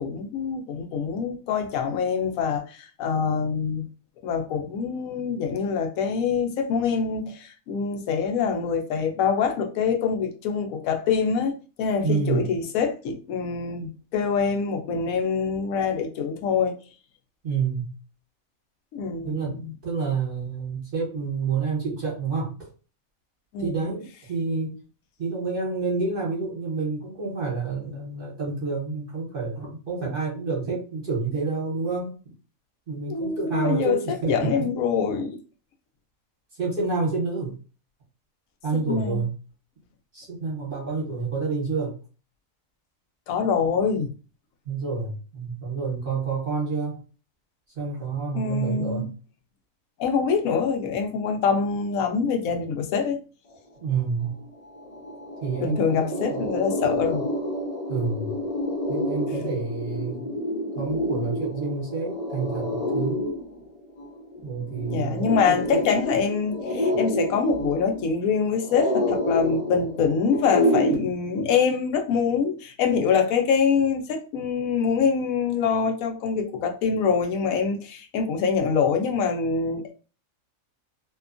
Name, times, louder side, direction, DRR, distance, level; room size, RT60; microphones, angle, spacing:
voice 1, 0.0-3.9 4.2-16.8 18.9-19.7 23.5-23.8 33.1-34.0 34.3-35.4 38.7-39.2 43.3-44.1 48.3-49.1 50.0-53.2 55.6-57.2 59.3-59.5 64.9-79.9, left 6 dB, 85° left, 1.0 m, -25 dB
voice 2, 12.0-12.5 17.4-17.9 19.2-22.5 23.6-24.7 25.2-32.1 32.9-34.5 36.6-37.5 38.6-39.3 40.1-41.9 44.6-47.0 47.8-49.1 53.8-54.4 55.4-56.4 57.9-58.4 58.9-60.2 60.7-63.4 64.4-65.8, right 4 dB, 45° right, 1.1 m, -28 dB
sound 1, 54.4-54.5 54.8-70.9, left 1 dB, 50° left, 0.4 m, -28 dB
2.8 x 2.2 x 2.5 m
omnidirectional pair, 1.4 m